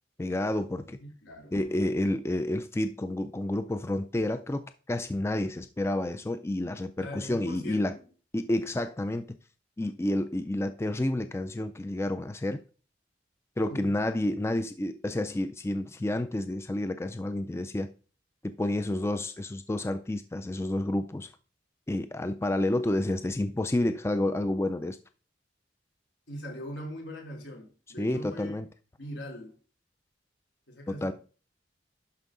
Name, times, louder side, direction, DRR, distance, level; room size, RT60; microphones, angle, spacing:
voice 1, 0.2-1.0 1.5-8.0 8.3-9.4 9.8-12.6 13.6-17.9 18.4-21.3 21.9-25.0 28.0-28.7 30.9-31.1, left 1 dB, 15° left, 0.4 m, -30 dB
voice 2, 1.0-1.5 7.0-8.1 13.7-13.9 26.3-28.6 29.0-29.5 30.7-31.1, equal, 80° left, 3.4 m, -41 dB
11.5 x 5.3 x 3.8 m
head